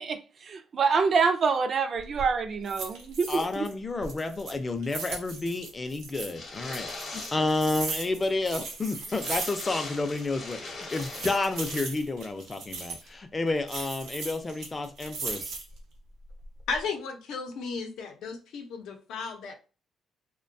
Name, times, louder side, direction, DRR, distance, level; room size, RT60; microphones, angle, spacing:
voice 1, 0.0-3.7, right 5 dB, 50° right, 0.4 m, -26 dB
sound 1, 2.0-2.3 2.7-3.7 4.0-6.3 6.7-9.9 10.2-10.3 10.8-13.1 13.7-15.8 16.3-16.8, right 4 dB, 85° right, 0.8 m, -38 dB
voice 2, 3.3-15.6, left 3 dB, 25° left, 0.5 m, -30 dB
sound 2, 6.1-8.1 8.3-8.4 8.7-8.8 9.0-11.8, left 3 dB, 50° left, 0.8 m, -41 dB
voice 3, 16.7-19.5, left 4 dB, 80° left, 0.6 m, -34 dB
2.6 x 2.2 x 2.6 m
cardioid pair, 90°, 0 cm